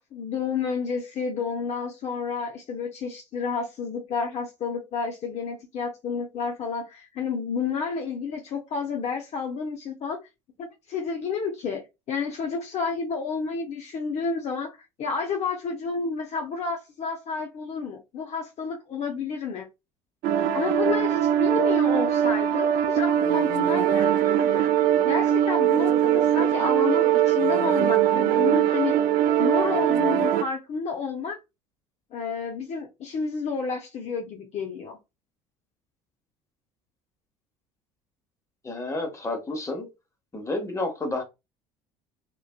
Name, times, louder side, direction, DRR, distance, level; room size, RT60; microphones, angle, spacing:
voice 1, 0.0-10.2 10.6-11.8 12.1-19.7 20.5-24.7 25.0-29.0 29.4-31.4 32.1-35.0, left 5 dB, 45° left, 0.6 m, -30 dB
sound 1, 20.2-30.4, right 10 dB, 55° right, 0.4 m, -21 dB
voice 2, 38.6-39.9 40.3-41.2, left 2 dB, 20° left, 1.0 m, -30 dB
2.5 x 2.2 x 2.3 m
hypercardioid pair, 70°, 16 cm